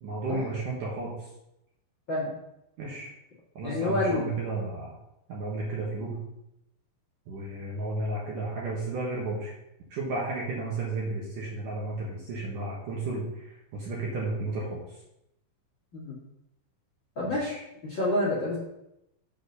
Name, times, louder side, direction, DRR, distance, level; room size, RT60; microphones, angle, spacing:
voice 1, 0.0-1.1 2.8-3.1 3.6-5.0 5.3-6.2 7.3-9.5 9.9-14.8 17.2-17.6, right 2 dB, 70° right, -4 dB, 2.0 m, -33 dB
voice 2, 3.6-4.3 15.9-16.1 17.1-17.5 17.8-18.6, left 2 dB, 45° left, -7 dB, 1.6 m, -28 dB
7.9 x 4.2 x 6.7 m, 0.86 s
omnidirectional pair, 5.6 m